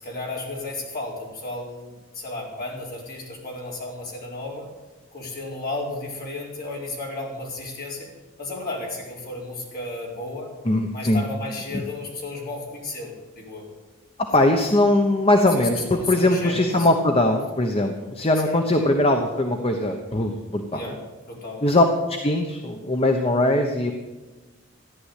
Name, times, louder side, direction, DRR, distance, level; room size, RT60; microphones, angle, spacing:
voice 1, 0.0-4.7 5.1-8.1 8.4-10.5 10.9-13.7 14.4-14.5 15.6-16.9 18.4-18.6 20.7-21.0 21.2-21.8, left 2 dB, 45° left, -2 dB, 4.5 m, -33 dB
voice 2, 10.6-11.2 11.7-11.8 14.2-21.0 21.6-23.9, left 1 dB, 25° left, 4 dB, 1.0 m, -21 dB
14.5 x 10.5 x 8.4 m, 1.2 s
head